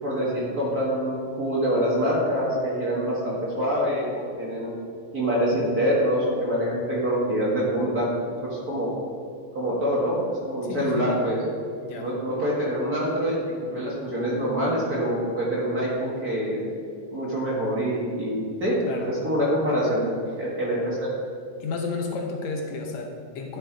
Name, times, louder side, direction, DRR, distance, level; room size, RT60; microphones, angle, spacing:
voice 1, 0.0-4.1 4.4-4.7 5.1-8.1 8.5-8.9 9.5-11.4 12.0-13.4 13.7-16.6 17.1-18.8 19.1-20.1 20.3-21.1, equal, 40° right, -6 dB, 1.6 m, -25 dB
voice 2, 10.6-11.1 11.8-12.1 18.9-19.1 21.6-23.6, left 4 dB, 70° left, 2 dB, 2.0 m, -32 dB
11.5 x 6.5 x 3.8 m, 2.4 s
omnidirectional pair, 3.4 m